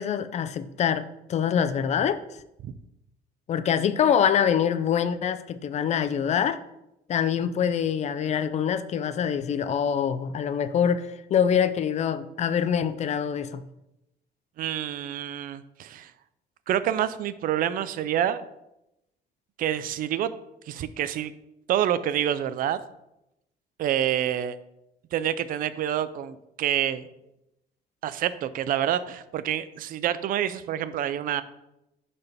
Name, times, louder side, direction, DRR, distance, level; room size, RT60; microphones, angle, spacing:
voice 1, 0.0-2.2 3.5-6.6 7.1-13.6, left 8 dB, 40° left, 12 dB, 0.4 m, -25 dB
voice 2, 14.6-16.1 16.7-18.4 19.6-20.3 20.7-21.3 21.7-22.8 23.8-24.6 25.1-27.1 28.0-31.4, right 10 dB, 55° right, 14 dB, 0.5 m, -27 dB
11.0 x 4.1 x 3.5 m, 0.87 s
cardioid pair, 140°, 17 cm